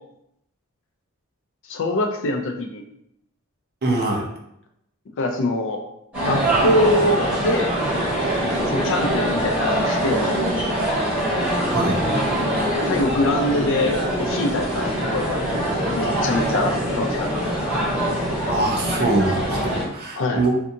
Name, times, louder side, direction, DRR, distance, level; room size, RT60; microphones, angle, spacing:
voice 1, 1.7-2.9 5.2-5.8 6.2-7.7 8.7-10.3 12.9-15.7 15.9-17.3 19.8-20.4, left 1 dB, 60° left, 4 dB, 0.4 m, -24 dB
voice 2, 3.8-4.2 11.7-12.0 18.5-20.6, right 2 dB, 45° right, 0 dB, 0.5 m, -23 dB
sound 1, 6.1-19.8, right 1 dB, 5° right, 1.3 m, -23 dB
2.7 x 2.4 x 2.6 m, 0.78 s
head